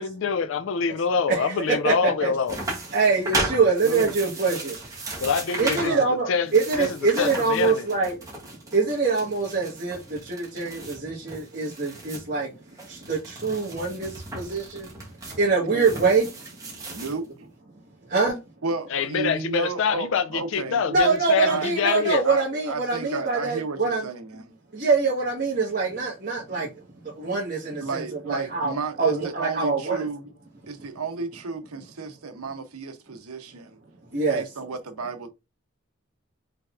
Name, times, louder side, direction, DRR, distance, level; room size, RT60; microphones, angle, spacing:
voice 1, 0.0-2.6 5.2-6.5 6.8-7.9 18.9-22.3, left 6 dB, 60° left, 0.4 m, -25 dB
voice 2, 1.3-1.9 2.2-2.3 2.9-4.8 5.6-8.1 8.7-12.5 12.9-14.9 15.3-16.3 18.1-18.4 20.9-24.1 24.7-26.7 27.0-28.7 29.0-30.0 34.1-34.4, right 4 dB, 40° right, 1.5 m, -24 dB
sound 1, 2.5-6.0 6.3-12.3 12.7-17.2, right 2 dB, 15° right, 1.3 m, -35 dB
voice 3, 3.8-4.2 5.8-6.1 15.7-16.1 16.9-17.3 18.6-20.8 21.4-21.7 22.2-24.5 27.8-30.3 30.7-33.8 34.3-35.3, right 4 dB, 90° right, 0.9 m, -32 dB
5.6 x 3.4 x 2.5 m
head